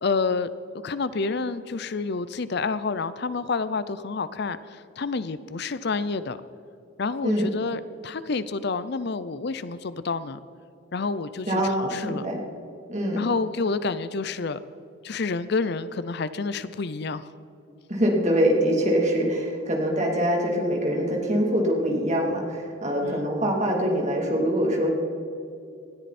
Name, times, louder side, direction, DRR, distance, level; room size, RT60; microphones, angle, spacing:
voice 1, 0.0-0.5 0.8-6.4 7.0-10.4 10.9-12.3 13.2-14.6 15.0-17.3 23.0-23.3, left 4 dB, 50° left, 14 dB, 0.5 m, -29 dB
voice 2, 11.5-12.4 12.9-13.2 17.9-24.9, equal, 35° right, -1 dB, 2.9 m, -24 dB
19.5 x 13.5 x 4.3 m, 2.6 s
head